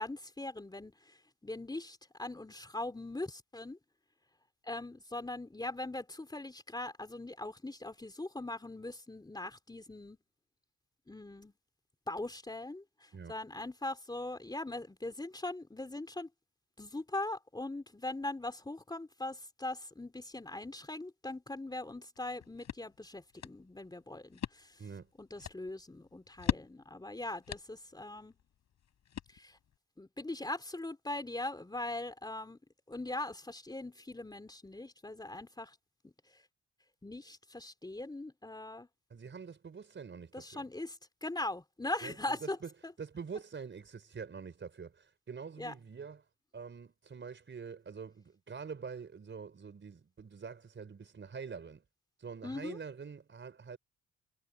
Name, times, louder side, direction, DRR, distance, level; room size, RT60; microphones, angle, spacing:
voice 1, 0.0-3.8 4.6-10.2 11.1-11.5 12.1-16.3 16.8-24.8 25.2-28.3 29.3-29.6 30.0-32.6 32.9-35.8 36.0-36.4 37.0-38.9 40.3-42.6 42.8-42.9 45.6-45.7 52.4-52.8, left 2 dB, 15° left, 3.5 m, -41 dB
sound 1, 22.2-29.8, left 9 dB, 60° left, 7.0 m, -42 dB
voice 2, 39.1-40.5 42.0-42.1 42.4-42.7 43.0-46.2 46.5-51.8 52.2-53.8, right 6 dB, 40° right, 4.9 m, -45 dB
cardioid pair, 90°, 30 cm